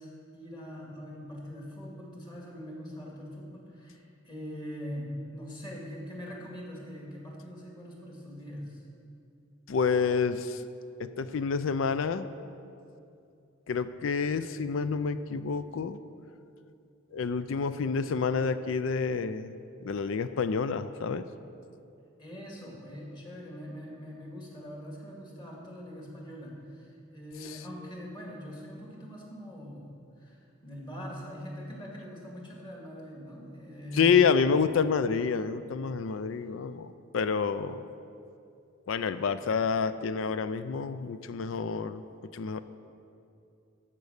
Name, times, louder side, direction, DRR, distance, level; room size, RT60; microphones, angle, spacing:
voice 1, 0.0-8.8 22.2-34.2 36.1-36.2, equal, 25° left, -2 dB, 2.1 m, -42 dB
voice 2, 9.7-10.6 11.0-12.3 13.7-16.0 17.1-19.5 19.8-21.3 27.4-27.6 33.9-37.9 38.9-42.0 42.3-42.6, left 5 dB, 75° left, 12 dB, 0.4 m, -28 dB
13.5 x 5.4 x 6.5 m, 2.6 s
head